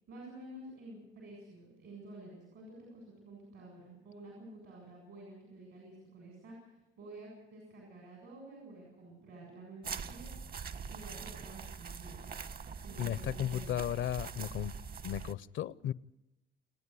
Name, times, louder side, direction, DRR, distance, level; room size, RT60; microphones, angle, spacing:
voice 1, 0.1-10.6 10.9-12.3 12.8-13.8, right 2 dB, 75° right, -1 dB, 7.7 m, -51 dB
sound 1, 9.8-15.3, right 6 dB, 50° right, 1.2 m, -43 dB
voice 2, 13.0-14.7 15.0-15.9, left 11 dB, 75° left, 19 dB, 0.6 m, -35 dB
29.0 x 9.7 x 9.7 m, 0.94 s
cardioid pair, 90°, 20 cm